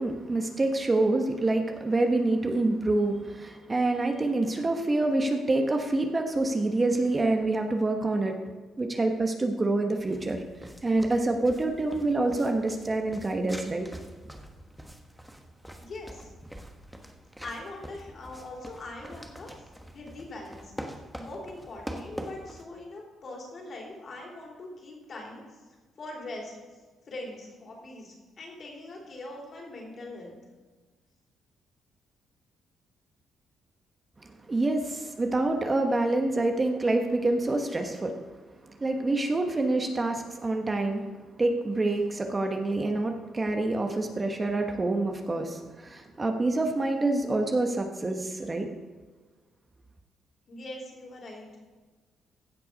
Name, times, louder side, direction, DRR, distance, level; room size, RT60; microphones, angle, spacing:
voice 1, 0.0-8.4 8.8-10.4 10.8-13.9 34.5-38.2 38.8-41.1 41.4-48.7, right 2 dB, 25° right, 4 dB, 1.1 m, -27 dB
sound 1, 10.0-22.6, equal, 5° right, 1.2 m, -44 dB
voice 2, 15.8-16.3 17.4-19.5 19.9-20.7 21.1-25.4 26.0-26.5 27.1-30.4 50.5-51.5, left 2 dB, 50° left, -1 dB, 3.7 m, -42 dB
16.0 x 5.8 x 5.2 m, 1.3 s
cardioid pair, 90°, 0 cm